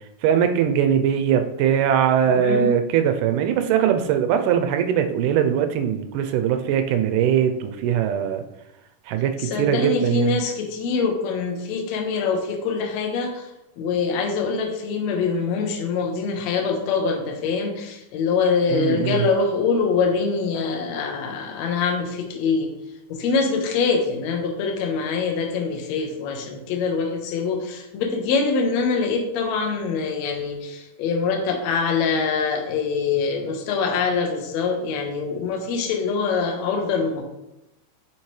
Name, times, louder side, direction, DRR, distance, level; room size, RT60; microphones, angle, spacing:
voice 1, 0.2-8.4 9.1-10.4 18.7-19.3, right 9 dB, 85° right, 7 dB, 2.2 m, -21 dB
voice 2, 2.3-2.8 9.4-13.5 13.8-22.7 23.1-37.2, left 5 dB, 70° left, 3 dB, 1.8 m, -24 dB
7.3 x 5.2 x 3.2 m, 0.92 s
omnidirectional pair, 3.7 m